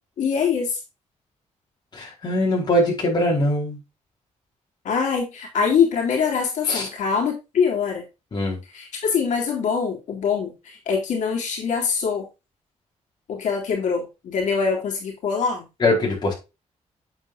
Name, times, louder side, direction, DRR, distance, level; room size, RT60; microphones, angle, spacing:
voice 1, 0.2-0.8 4.9-8.0 8.7-12.3 13.3-15.7, left 6 dB, 75° left, 0 dB, 3.4 m, -23 dB
voice 2, 1.9-3.8 6.7-6.9 8.3-8.6 15.8-16.3, left 1 dB, 35° left, -2 dB, 4.8 m, -22 dB
8.7 x 8.1 x 2.6 m, 0.26 s
wide cardioid pair, 170°, 13 cm